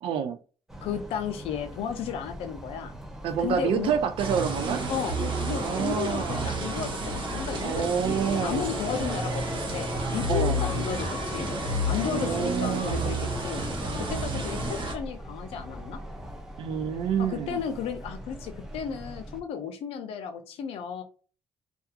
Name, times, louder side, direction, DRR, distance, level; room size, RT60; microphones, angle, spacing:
voice 1, 0.0-0.4 3.2-4.8 5.6-6.4 7.6-8.7 10.3-10.6 12.0-13.2 16.6-17.6, right 7 dB, 75° right, 7 dB, 0.3 m, -28 dB
sound 1, 0.7-19.4, equal, 5° right, 0.6 m, -42 dB
voice 2, 0.8-2.9 3.4-4.0 4.9-7.9 8.3-9.4 9.7-11.5 11.9-13.6 14.0-16.0 17.2-21.0, left 8 dB, 85° left, 8 dB, 0.5 m, -34 dB
sound 2, 4.2-14.9, right 1 dB, 60° right, 0.8 m, -31 dB
sound 3, 8.0-14.8, left 1 dB, 35° left, 0.7 m, -39 dB
2.3 x 2.3 x 2.7 m, 0.37 s
cardioid pair, 105°, 10 cm